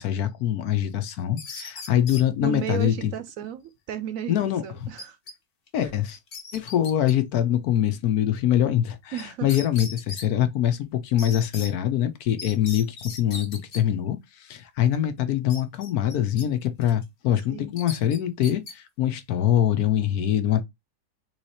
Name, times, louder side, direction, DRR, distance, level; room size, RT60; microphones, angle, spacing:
voice 1, 0.0-3.1 4.3-4.6 5.7-6.2 6.5-20.7, left 11 dB, 75° left, 1.2 m, -24 dB
sound 1, 1.1-2.2 5.0-5.3 5.7-5.8 6.1-7.1 9.2-9.3 9.5-10.3 11.2-11.7 12.4-13.8 15.5-16.5 16.8-17.0 17.8-18.7, left 4 dB, 40° left, 1.1 m, -38 dB
voice 2, 2.4-5.2 5.8-5.9 9.1-9.6 17.5-17.7, right 10 dB, 70° right, 0.9 m, -34 dB
4.0 x 3.2 x 4.1 m
omnidirectional pair, 1.7 m